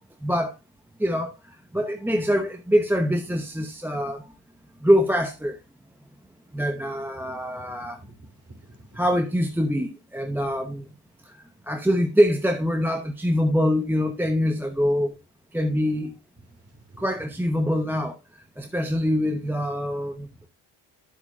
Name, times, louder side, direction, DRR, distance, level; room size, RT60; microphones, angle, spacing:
voice 1, 0.2-0.5 1.0-1.3 1.7-4.2 4.8-5.5 6.5-8.0 9.0-10.9 11.7-15.2 15.5-16.1 17.0-18.1 18.6-20.3, equal, 5° right, 0.8 m, -24 dB
voice 2, 7.7-9.0 16.7-17.1, right 1 dB, 30° right, 2.8 m, -49 dB
10.0 x 8.0 x 2.3 m
supercardioid pair, 80°, 47 cm